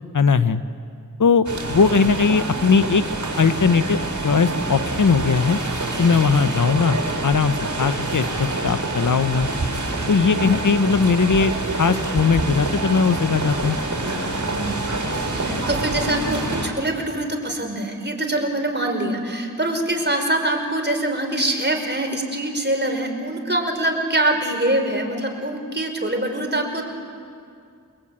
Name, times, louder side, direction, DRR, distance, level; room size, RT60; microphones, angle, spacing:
voice 1, 0.1-0.6 1.2-3.0 3.4-4.0 4.2-5.6 6.0-9.5 10.1-11.5 11.8-13.8, left 5 dB, 70° left, 12 dB, 0.9 m, -19 dB
sound 1, 1.4-16.7, right 2 dB, 60° right, 3.8 m, -26 dB
voice 2, 10.1-10.5 14.5-26.9, right 1 dB, 35° right, 3 dB, 4.8 m, -24 dB
28.5 x 21.5 x 8.9 m, 2.3 s
wide cardioid pair, 45°, 32 cm